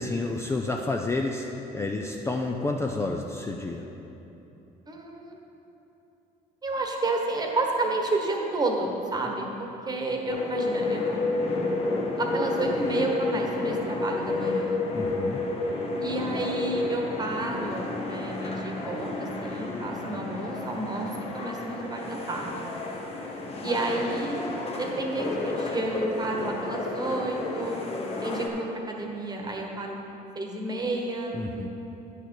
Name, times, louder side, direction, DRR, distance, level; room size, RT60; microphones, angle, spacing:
voice 1, 0.0-1.5 1.7-3.9 14.9-15.4 31.3-31.7, left 2 dB, 15° left, 1 dB, 0.5 m, -30 dB
voice 2, 4.9-5.4 6.6-11.4 12.2-14.8 16.0-22.7 23.6-24.4 24.8-27.8 28.2-30.0 30.3-31.7, right 2 dB, 25° right, 1 dB, 1.3 m, -31 dB
sound 1, 10.3-28.5, left 2 dB, 35° left, 1.2 m, -31 dB
10.0 x 6.8 x 4.7 m, 3.0 s
cardioid pair, 110°, 17 cm